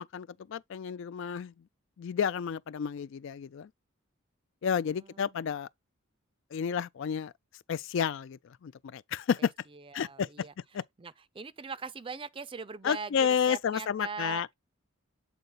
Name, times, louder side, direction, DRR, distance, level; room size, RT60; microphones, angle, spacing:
voice 1, 0.0-1.5 2.0-3.7 4.6-5.7 6.5-7.3 7.7-9.5 9.9-10.3 10.7-10.8 12.8-14.5, left 7 dB, 60° left, 0.3 m, -31 dB
voice 2, 4.8-5.5 9.4-14.4, right 5 dB, 25° right, 0.4 m, -42 dB
8.0 x 3.8 x 4.1 m
head